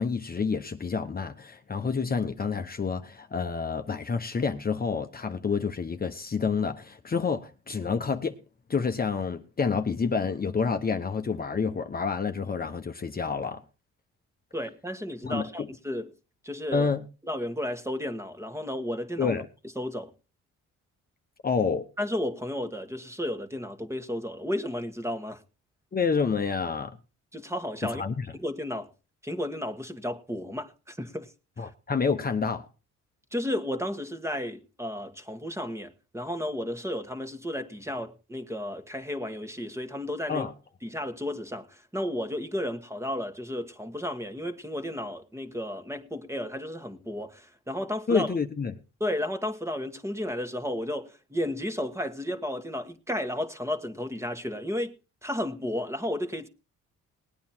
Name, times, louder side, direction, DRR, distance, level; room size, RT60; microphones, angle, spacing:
voice 1, 0.0-8.4 8.7-13.6 15.2-15.7 16.7-17.0 19.2-19.5 21.4-21.9 25.9-27.0 27.8-28.2 31.6-32.7 40.3-40.5 48.1-48.7, left 5 dB, 30° left, 1.1 m, -28 dB
voice 2, 14.5-16.1 16.4-16.9 17.3-19.4 19.7-20.1 22.0-25.4 27.3-28.0 28.4-28.9 29.2-31.3 31.6-31.7 33.3-40.5 40.8-48.3 49.0-54.9 55.2-56.5, left 1 dB, 10° right, 1.6 m, -33 dB
19.0 x 9.5 x 4.4 m
cardioid pair, 90°, 30 cm